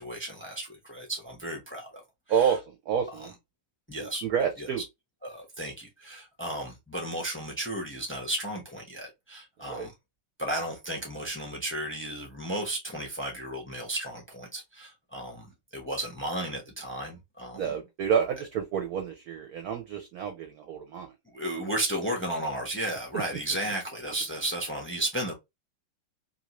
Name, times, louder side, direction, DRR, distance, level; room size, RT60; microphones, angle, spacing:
voice 1, 0.0-2.0 2.4-2.5 3.9-4.2 4.6-4.7 5.2-9.9 10.4-17.6 21.3-25.3, right 1 dB, 20° left, 0.3 m, -34 dB
voice 2, 2.3-3.3 4.0-4.8 9.6-9.9 17.5-21.1 23.1-23.2, right 7 dB, 65° right, 1.0 m, -29 dB
3.0 x 2.7 x 2.9 m
omnidirectional pair, 2.1 m